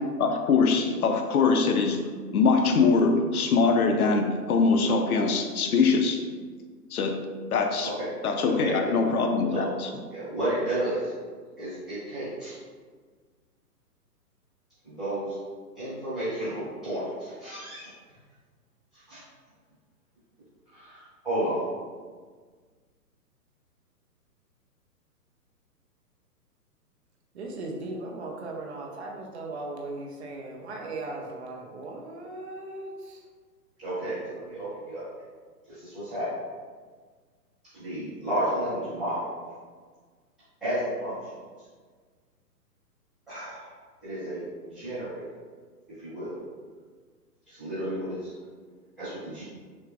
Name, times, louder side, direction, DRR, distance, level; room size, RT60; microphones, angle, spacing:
voice 1, 0.0-2.0 2.3-6.2 6.9-7.9 8.2-9.9, left 4 dB, 65° left, 5 dB, 0.6 m, -23 dB
voice 2, 8.4-8.9 9.5-9.6 10.1-11.1 11.6-12.5 14.8-15.4 15.7-17.9 19.1-19.2 20.7-20.9 21.2-21.6 33.8-35.0 35.7-36.3 37.7-39.3 40.6-41.1 43.3-43.7 44.0-45.2 46.0-46.4 47.5-48.3 49.0-49.4, right 1 dB, ahead, -22 dB, 0.5 m, -32 dB
voice 3, 27.3-33.2, right 2 dB, 45° right, 0 dB, 0.7 m, -37 dB
6.1 x 2.3 x 2.4 m, 1.5 s
hypercardioid pair, 145°, 48 cm